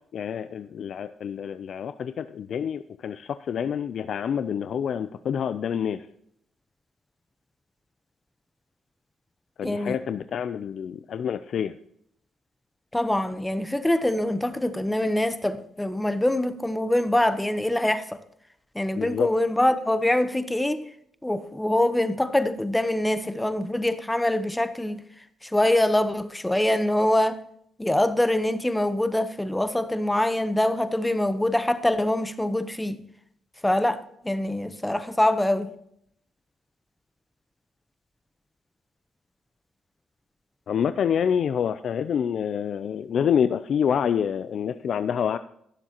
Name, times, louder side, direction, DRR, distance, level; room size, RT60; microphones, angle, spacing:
voice 1, 0.1-6.1 9.6-11.7 19.0-19.3 40.7-45.4, left 8 dB, 60° left, 0.4 m, -27 dB
voice 2, 9.6-10.0 12.9-18.2 18.7-20.9 21.2-25.1 25.4-27.4 27.8-33.0 33.6-35.7, left 1 dB, 10° left, 0.8 m, -24 dB
16.5 x 7.3 x 2.9 m
cardioid pair, 90°, 0 cm